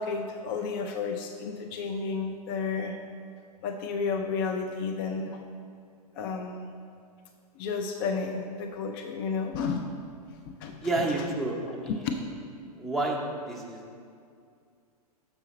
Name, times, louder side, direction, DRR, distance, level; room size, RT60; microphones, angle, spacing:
voice 1, 0.0-3.0 3.6-5.4 6.2-6.7 7.6-10.1 10.5-11.3 11.9-12.0, left 5 dB, 35° left, 4 dB, 0.4 m, -32 dB
voice 2, 10.8-11.9 12.8-13.2 13.5-13.8, right 2 dB, ahead, -2 dB, 0.8 m, -29 dB
6.8 x 5.5 x 4.1 m, 2.3 s
figure-of-eight pair, 105°, 20 cm